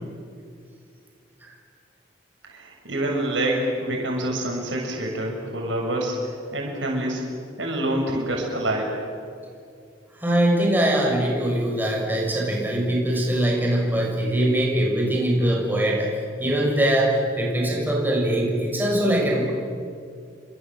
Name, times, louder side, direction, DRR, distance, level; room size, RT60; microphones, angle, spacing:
voice 1, 2.4-7.2 7.6-9.0, right 1 dB, 80° right, 0 dB, 7.5 m, -26 dB
voice 2, 10.2-16.1 16.4-19.5, right 1 dB, 10° right, -2 dB, 6.5 m, -22 dB
29.5 x 26.0 x 7.8 m, 2.3 s
head